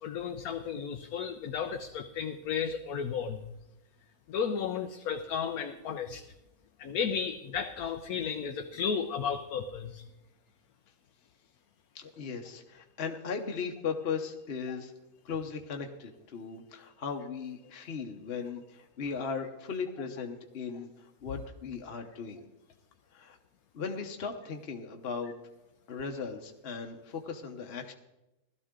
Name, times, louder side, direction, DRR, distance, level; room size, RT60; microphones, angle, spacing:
voice 1, 0.0-3.4 4.3-6.2 6.8-10.0, left 7 dB, 90° left, 5 dB, 1.2 m, -33 dB
voice 2, 11.9-14.9 15.2-22.4 23.1-23.4 23.7-25.3 25.9-27.9, left 5 dB, 50° left, 3 dB, 1.1 m, -37 dB
16.5 x 12.5 x 3.7 m, 0.95 s
omnidirectional pair, 1.5 m